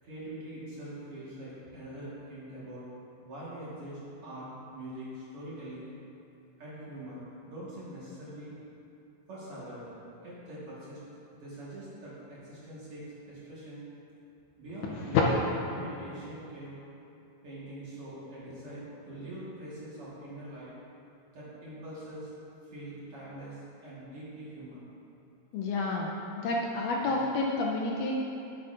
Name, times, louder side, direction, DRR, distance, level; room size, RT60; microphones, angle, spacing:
voice 1, 0.0-2.8 3.2-5.9 6.6-8.6 9.3-11.0 11.3-13.8 14.6-15.2 15.7-16.8 17.4-20.7 21.3-22.3 22.6-24.9 27.0-27.1, right 1 dB, 50° right, -9 dB, 2.1 m, -43 dB
voice 2, 14.8-15.2 25.5-28.1, left 4 dB, 80° left, -1 dB, 2.0 m, -29 dB
12.0 x 8.4 x 2.5 m, 2.8 s
omnidirectional pair, 4.1 m